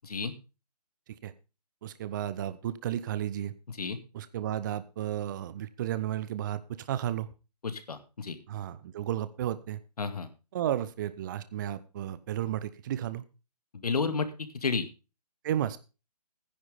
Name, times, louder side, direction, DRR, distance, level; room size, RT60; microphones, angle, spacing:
voice 1, 1.8-3.5 4.1-7.3 8.5-9.8 10.5-13.2 15.4-15.8, right 11 dB, 30° right, 15 dB, 0.7 m, -33 dB
voice 2, 7.6-8.4 10.0-10.3 13.8-14.9, left 4 dB, 70° left, 9 dB, 2.2 m, -31 dB
14.5 x 10.5 x 3.5 m, 0.31 s
figure-of-eight pair, 145°, 20 cm